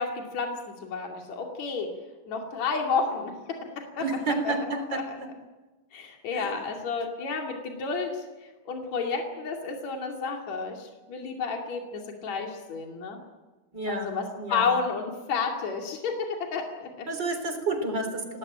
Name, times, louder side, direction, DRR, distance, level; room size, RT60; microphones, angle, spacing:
voice 1, 0.0-1.9 2.3-4.1 4.4-4.5 4.9-5.2 5.9-8.2 8.7-13.2 13.9-17.1, left 5 dB, 65° left, 1 dB, 3.8 m, -31 dB
voice 2, 4.0-5.3 6.3-6.5 13.7-14.7 17.1-18.4, right 2 dB, 35° right, 6 dB, 4.2 m, -31 dB
27.0 x 19.0 x 8.9 m, 1.2 s
omnidirectional pair, 3.4 m